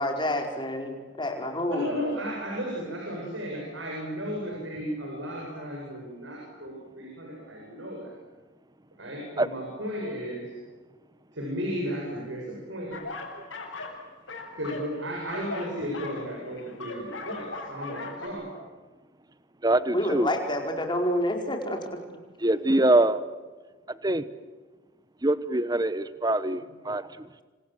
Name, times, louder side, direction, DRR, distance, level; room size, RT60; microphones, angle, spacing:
voice 1, 0.0-2.0 19.9-21.8, left 1 dB, 20° left, 3 dB, 4.6 m, -28 dB
voice 2, 1.7-8.1 9.0-10.5 11.3-13.1 14.6-18.5, equal, 65° right, -1 dB, 7.8 m, -34 dB
sound 1, 12.9-14.0 14.3-18.3, left 3 dB, 65° left, 7.7 m, -38 dB
voice 3, 19.6-20.3 22.4-23.2 24.0-24.3 25.2-27.4, right 1 dB, 20° right, 14 dB, 1.0 m, -24 dB
27.5 x 27.0 x 7.8 m, 1.3 s
head